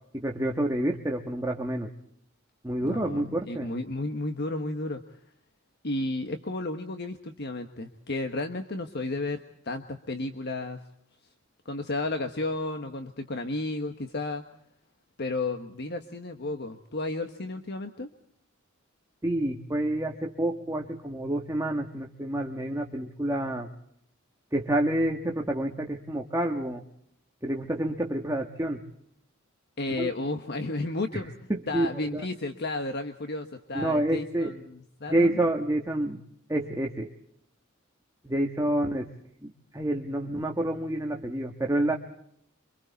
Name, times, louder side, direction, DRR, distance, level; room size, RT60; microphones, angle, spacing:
voice 1, 0.1-1.9 2.6-3.7 19.2-23.7 24.5-26.8 27.4-28.8 29.9-30.1 31.1-31.9 32.1-32.2 33.7-34.6 35.1-36.2 36.5-37.1 38.2-39.1 39.4-42.0, right 1 dB, 15° right, 2 dB, 1.5 m, -28 dB
voice 2, 2.8-5.2 5.8-10.8 11.6-14.4 15.2-18.1 29.8-31.3 31.7-35.4, left 2 dB, 55° left, 6 dB, 1.3 m, -33 dB
27.5 x 25.0 x 4.1 m, 0.71 s
head